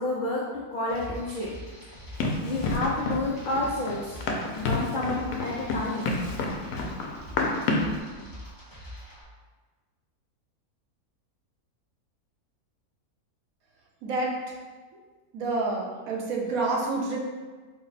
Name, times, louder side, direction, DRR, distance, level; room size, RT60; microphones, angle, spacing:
voice 1, 0.0-1.6 2.1-4.2 4.5-6.1, left 2 dB, 75° left, -5 dB, 0.4 m, -30 dB
sound 1, 0.9-9.2, equal, 15° left, 0.9 m, -44 dB
Run, 2.2-8.0, left 2 dB, 90° left, 1.1 m, -29 dB
voice 2, 14.0-14.4 15.3-17.2, right 3 dB, 70° right, -1 dB, 1.1 m, -28 dB
4.1 x 2.1 x 4.0 m, 1.4 s
omnidirectional pair, 1.6 m